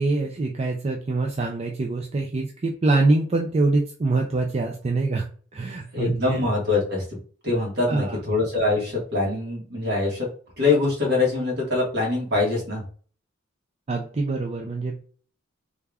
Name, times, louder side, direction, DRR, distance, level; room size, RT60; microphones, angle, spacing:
voice 1, 0.0-6.4 7.9-8.2 13.9-15.0, right 2 dB, 35° right, 1 dB, 0.4 m, -24 dB
voice 2, 5.9-7.0 7.4-10.3 10.6-12.8, left 3 dB, 55° right, -2 dB, 1.6 m, -23 dB
3.3 x 2.3 x 3.4 m, 0.43 s
head